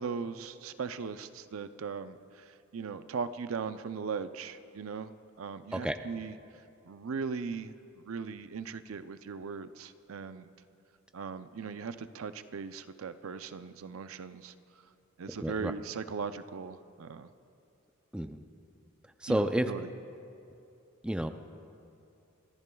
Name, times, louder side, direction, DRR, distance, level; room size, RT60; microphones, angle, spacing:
voice 1, 0.0-5.1 5.4-6.3 6.8-10.5 11.1-14.5 15.2-17.3 19.3-19.8, right 5 dB, 75° right, 11 dB, 0.5 m, -39 dB
voice 2, 15.4-15.7 18.1-18.4 19.0-19.7 21.0-21.3, right 1 dB, 5° right, 7 dB, 0.4 m, -30 dB
29.5 x 14.0 x 2.3 m, 2.7 s
head